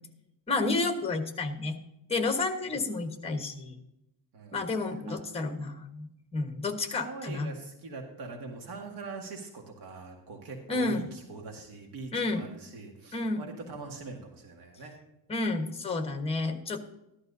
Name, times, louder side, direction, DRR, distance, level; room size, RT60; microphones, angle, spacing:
voice 1, 0.5-1.8 2.1-3.7 4.5-7.5 10.7-11.1 12.1-12.4 13.1-13.4 15.3-16.8, left 3 dB, 15° left, 5 dB, 1.2 m, -30 dB
voice 2, 6.9-15.0, right 3 dB, 70° right, 1 dB, 1.9 m, -43 dB
14.0 x 12.0 x 2.7 m, 0.87 s
cardioid pair, 160°, 40 cm